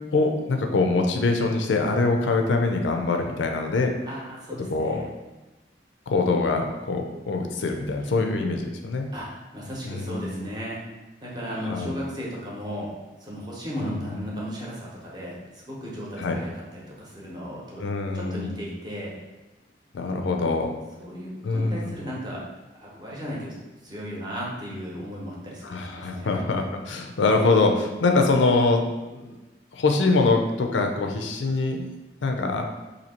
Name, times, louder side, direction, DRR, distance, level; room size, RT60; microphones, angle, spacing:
voice 1, 0.1-3.9 4.7-5.0 6.1-9.1 9.8-10.5 11.7-11.9 13.8-13.9 16.2-16.4 17.8-18.6 19.9-20.7 21.4-21.9 25.6-29.4 29.7-31.9 32.2-32.7, left 3 dB, 85° left, 3 dB, 0.4 m, -24 dB
voice 2, 4.1-5.0 8.0-8.1 9.1-10.8 11.2-12.9 13.2-17.8 18.1-19.1 21.0-22.4 22.8-26.4, equal, 25° right, -5 dB, 0.8 m, -35 dB
2.9 x 2.7 x 4.2 m, 1.1 s
head